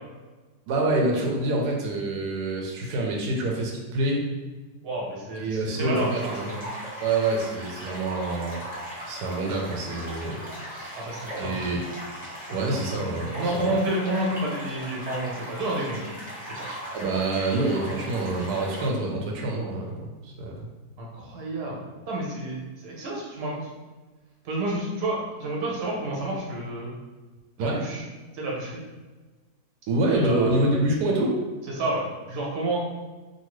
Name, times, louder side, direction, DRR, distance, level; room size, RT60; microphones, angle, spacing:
voice 1, 0.7-4.2 5.3-6.5 7.0-8.6 9.1-11.0 11.3-11.8 12.5-13.8 16.9-20.7 27.6-27.8 29.9-31.4, right 2 dB, 85° right, 0 dB, 1.1 m, -26 dB
voice 2, 4.8-6.6 10.9-11.6 13.3-16.0 16.4-16.8 21.0-23.6 24.4-26.9 27.6-28.0 28.3-28.8 30.1-30.8 31.8-32.0 32.3-32.8, right 1 dB, 50° right, -4 dB, 0.9 m, -30 dB
sound 1, 5.9-18.9, equal, 10° right, 0.6 m, -38 dB
2.7 x 2.4 x 3.0 m, 1.3 s
omnidirectional pair, 1.7 m